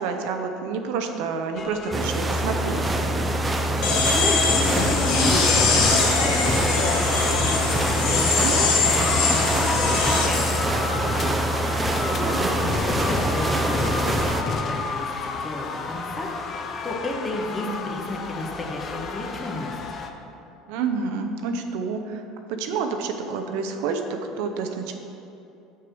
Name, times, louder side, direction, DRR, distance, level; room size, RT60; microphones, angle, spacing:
voice 1, 0.0-2.8 8.4-8.5 12.2-12.7 17.6-17.8 20.7-22.2 22.5-24.9, right 5 dB, 75° right, 5 dB, 0.6 m, -29 dB
sound 1, 1.6-20.1, left 4 dB, 40° left, 0.5 m, -31 dB
sound 2, 1.9-14.4, right 1 dB, 20° right, 0.6 m, -25 dB
sound 3, 3.8-10.3, left 4 dB, 65° left, 1.1 m, -22 dB
voice 2, 4.0-10.4 10.9-11.4 12.1-16.3 16.8-19.8, left 1 dB, 25° left, 0 dB, 1.3 m, -32 dB
6.0 x 4.7 x 6.2 m, 2.8 s
supercardioid pair, 95°, 0 cm